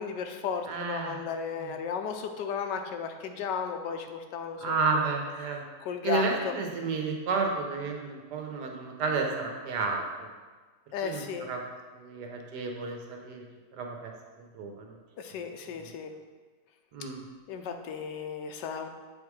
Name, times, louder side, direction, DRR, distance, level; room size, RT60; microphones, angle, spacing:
voice 1, 0.0-5.0 5.8-6.5 10.9-11.5 15.2-16.1 17.5-18.9, left 6 dB, 85° left, 6 dB, 1.3 m, -34 dB
voice 2, 0.7-1.2 1.6-1.7 4.6-5.6 6.0-10.3 11.0-11.6 11.9-13.4 13.8-14.1 14.5-15.0 16.9-17.2, right 4 dB, 75° right, 2 dB, 1.5 m, -31 dB
7.6 x 3.6 x 4.7 m, 1.4 s
omnidirectional pair, 1.8 m